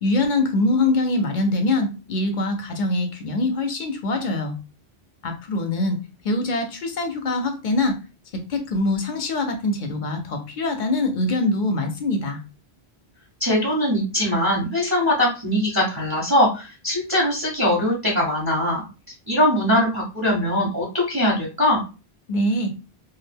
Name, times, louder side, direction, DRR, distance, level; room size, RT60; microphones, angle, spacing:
voice 1, 0.0-4.5 5.2-6.0 6.2-8.0 8.5-12.4 22.3-22.7, left 2 dB, 60° left, 4 dB, 0.6 m, -23 dB
voice 2, 13.4-18.8 19.3-21.8, left 1 dB, 25° right, -3 dB, 0.6 m, -21 dB
2.3 x 2.0 x 3.3 m, 0.32 s
omnidirectional pair, 1.1 m